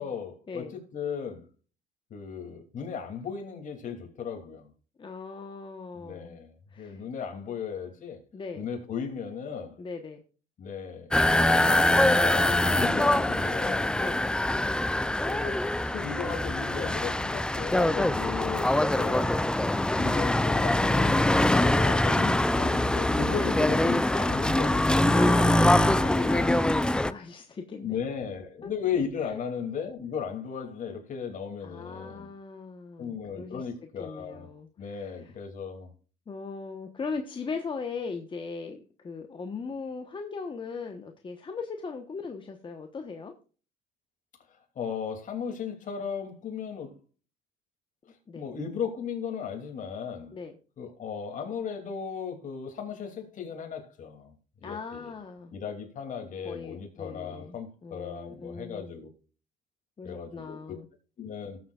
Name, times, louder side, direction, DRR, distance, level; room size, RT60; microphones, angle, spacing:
voice 1, 0.0-1.4 2.1-4.7 5.9-8.2 8.6-9.8 10.6-11.1 11.7-14.0 15.2-19.3 19.9-24.9 27.8-32.3 33.0-34.5 34.8-35.9 44.7-46.9 48.3-50.3 50.8-54.3 54.6-55.1 55.5-59.1 60.0-60.6 61.2-61.6, left 7 dB, 50° left, 2.8 m, -36 dB
voice 2, 5.0-6.4 6.7-7.0 8.3-8.7 9.8-10.2 13.9-14.2 19.1-19.7 23.3-23.6 25.1-28.0 28.6-28.7 29.2-29.4 31.6-33.7 34.0-35.3 36.3-43.3 48.3-48.5 50.3-50.6 54.6-55.5 56.4-58.9 60.0-60.9, left 4 dB, 30° left, 1.2 m, -39 dB
sound 1, 11.1-27.1, left 1 dB, 5° left, 0.4 m, -24 dB
18.5 x 7.1 x 2.4 m
cardioid pair, 110°, 17 cm